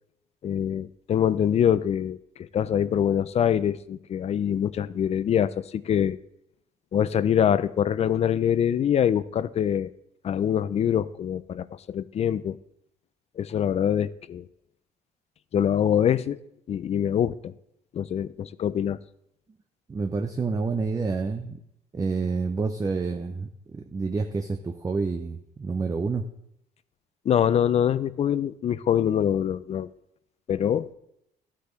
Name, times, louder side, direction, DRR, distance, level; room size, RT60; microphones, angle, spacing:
voice 1, 0.4-6.2 6.9-9.9 10.2-12.6 13.4-14.5 15.5-16.4 16.7-17.5 17.9-19.0 27.3-29.9 30.5-30.9, left 9 dB, 40° left, 16 dB, 0.4 m, -24 dB
voice 2, 19.9-21.6 21.9-26.3, right 4 dB, 20° right, 7 dB, 0.5 m, -28 dB
12.5 x 8.3 x 3.1 m, 0.78 s
cardioid pair, 110°, 17 cm